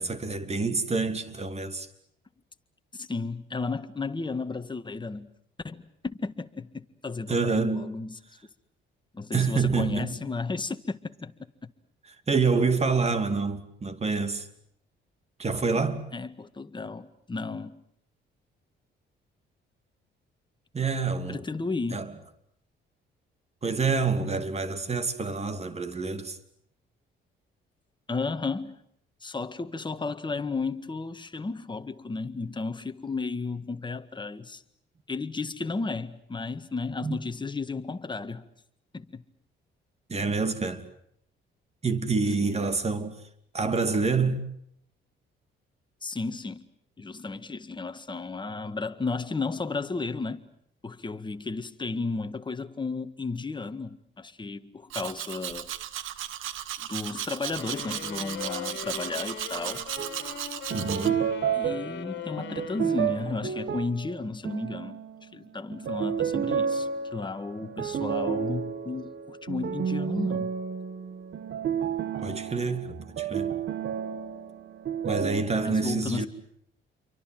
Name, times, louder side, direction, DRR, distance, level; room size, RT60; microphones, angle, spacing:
voice 1, 0.0-1.9 7.3-7.9 9.3-10.1 12.3-14.5 15.4-16.0 20.7-21.4 21.9-22.1 23.6-26.4 37.0-37.2 40.1-40.9 41.8-43.2 43.5-44.4 60.7-61.3 72.2-73.6 75.0-76.3, right 4 dB, 30° right, 2.7 m, -27 dB
voice 2, 2.9-5.3 5.6-8.2 9.1-11.3 16.1-17.8 21.3-22.1 28.1-28.8 29.2-34.6 35.1-38.4 38.9-39.2 42.4-42.6 46.0-46.7 47.0-50.5 50.8-55.7 56.8-59.9 61.5-70.5 75.6-76.3, left 3 dB, 25° left, 1.8 m, -33 dB
Domestic sounds home sounds, 54.9-61.1, right 11 dB, 85° right, 1.4 m, -36 dB
sound 1, 57.6-64.0, left 9 dB, 65° left, 2.5 m, -40 dB
sound 2, 60.0-60.2 60.7-65.3 65.7-75.4, right 7 dB, 60° right, 1.7 m, -31 dB
29.0 x 24.0 x 7.7 m
cardioid pair, 90°, 20 cm